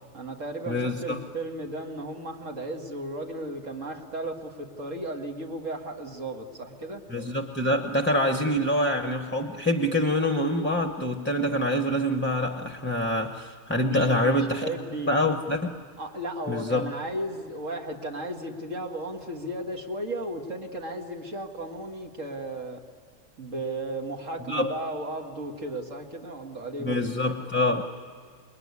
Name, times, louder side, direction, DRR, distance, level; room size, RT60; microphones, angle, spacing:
voice 1, 0.1-7.0 13.9-15.1 16.0-22.8 23.4-27.0, right 1 dB, 65° right, 2 dB, 2.3 m, -35 dB
voice 2, 0.7-1.2 7.1-14.7 15.1-15.8 16.5-16.9 24.5-24.7 26.8-27.8, left 1 dB, 10° left, 5 dB, 0.9 m, -25 dB
27.5 x 21.5 x 9.7 m, 2.1 s
omnidirectional pair, 1.4 m